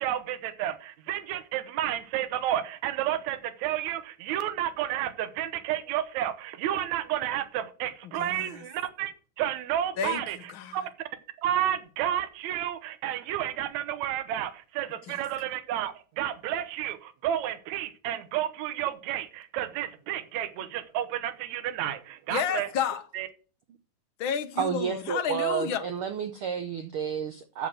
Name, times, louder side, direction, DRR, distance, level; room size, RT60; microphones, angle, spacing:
voice 1, 0.0-9.1 9.4-10.4 10.7-10.9 11.4-22.7 23.1-23.3, right 11 dB, 70° right, 2.2 m, -31 dB
voice 2, 8.0-8.6 10.0-10.9 15.1-15.2 22.3-23.1 24.2-25.9, left 7 dB, 60° left, 1.3 m, -31 dB
voice 3, 24.6-27.7, right 7 dB, 85° right, 1.2 m, -30 dB
8.3 x 7.1 x 7.6 m
omnidirectional pair, 3.5 m